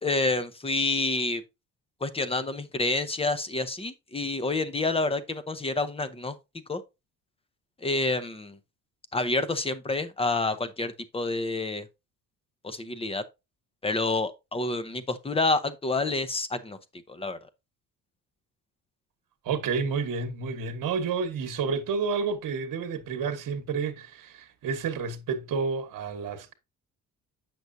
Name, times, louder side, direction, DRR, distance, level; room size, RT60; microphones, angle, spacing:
voice 1, 0.0-1.4 2.0-6.4 6.7-6.8 7.8-8.6 9.1-11.9 12.6-13.2 13.8-16.8 17.1-17.4, left 3 dB, 15° left, 0.7 m, -28 dB
voice 2, 19.4-26.5, right 5 dB, 60° right, 1.2 m, -30 dB
8.0 x 6.1 x 2.6 m
cardioid pair, 120°, 36 cm